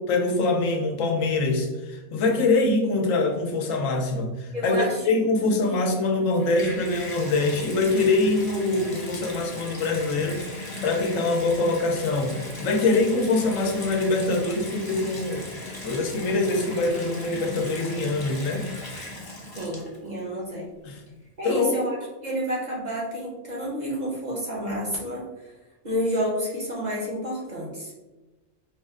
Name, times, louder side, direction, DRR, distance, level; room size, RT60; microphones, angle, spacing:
voice 1, 0.1-15.5 15.8-18.7 20.9-21.0 21.4-21.8, left 3 dB, 85° left, 2 dB, 1.1 m, -24 dB
voice 2, 4.5-5.1 5.4-5.9 19.5-20.7 21.4-22.0 22.2-25.3 25.8-27.9, equal, 40° right, -4 dB, 0.9 m, -30 dB
Water tap faucet / Bathtub (filling or washing), 6.1-20.2 21.0-21.1, left 2 dB, 25° left, 0.5 m, -38 dB
4.6 x 2.1 x 3.6 m, 1.1 s
omnidirectional pair, 1.3 m